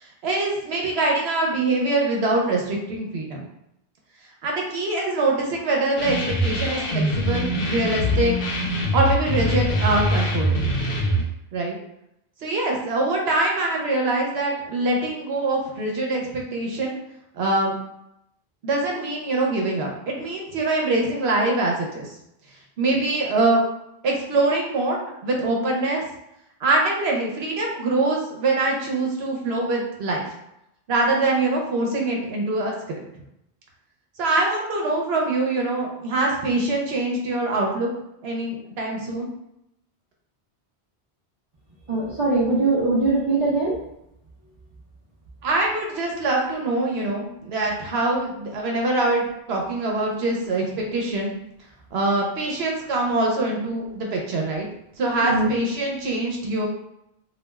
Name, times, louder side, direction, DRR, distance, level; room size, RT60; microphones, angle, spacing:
voice 1, 0.0-3.5 4.4-8.3 8.9-10.6 11.5-11.8 12.4-16.9 17.3-17.8 18.6-22.1 22.8-23.6 24.0-26.0 26.6-30.2 30.9-33.0 34.2-37.9 38.2-39.3 45.4-51.3 51.9-54.7 55.0-56.7, right 2 dB, 75° right, 0 dB, 0.9 m, -24 dB
sound 1, 6.0-11.2, equal, 65° left, 0.7 m, -23 dB
voice 2, 41.9-43.7 55.3-55.5, right 3 dB, 40° right, -6 dB, 0.5 m, -21 dB
3.2 x 2.3 x 2.2 m, 0.82 s
omnidirectional pair, 1.1 m